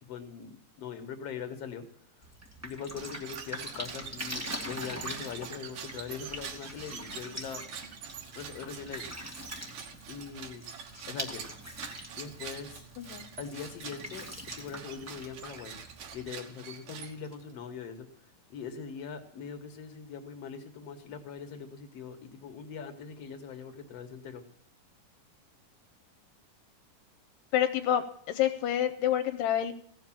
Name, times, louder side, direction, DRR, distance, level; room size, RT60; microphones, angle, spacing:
voice 1, 0.0-1.9 2.6-7.6 8.4-9.0 10.1-10.6 11.1-11.4 12.2-12.8 13.4-14.3 14.6-15.7 16.1-18.1 18.5-24.4, left 6 dB, 60° left, 7 dB, 2.1 m, -41 dB
Drip, 2.2-16.3, equal, 20° right, 0.4 m, -43 dB
sound 1, 2.9-17.5, right 7 dB, 75° right, 2.9 m, -45 dB
voice 2, 13.0-13.3 27.5-29.7, left 10 dB, 80° left, 9 dB, 2.3 m, -28 dB
16.0 x 7.0 x 7.3 m, 0.71 s
omnidirectional pair, 3.8 m